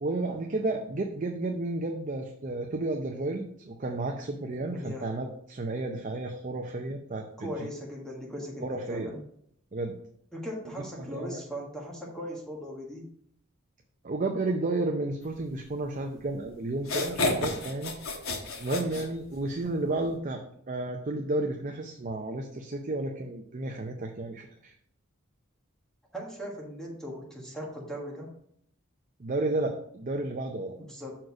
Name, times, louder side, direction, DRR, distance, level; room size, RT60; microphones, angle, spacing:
voice 1, 0.0-7.7 8.6-9.1 9.7-10.0 10.9-11.4 14.0-18.2 18.6-24.7 29.2-30.8, right 2 dB, 40° right, 3 dB, 0.6 m, -32 dB
voice 2, 4.7-5.1 7.4-9.2 10.3-13.1 26.1-28.3 30.8-31.1, equal, 5° left, -3 dB, 1.4 m, -39 dB
sound 1, 16.2-16.3 16.8-19.6, left 2 dB, 90° left, 1.2 m, -31 dB
6.4 x 4.5 x 4.7 m, 0.67 s
head